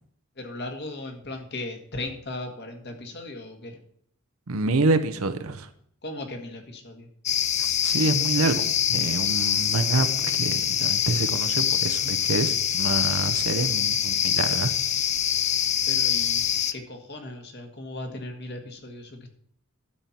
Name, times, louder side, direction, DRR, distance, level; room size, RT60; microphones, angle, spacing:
voice 1, 0.4-3.8 6.0-7.1 15.9-16.4 16.7-19.3, left 2 dB, 50° left, 4 dB, 1.8 m, -37 dB
voice 2, 4.5-5.7 7.6-14.7, right 3 dB, 75° right, 9 dB, 0.8 m, -27 dB
sound 1, 7.3-16.7, left 9 dB, 30° left, 0.5 m, -24 dB
12.5 x 4.5 x 7.1 m, 0.64 s
head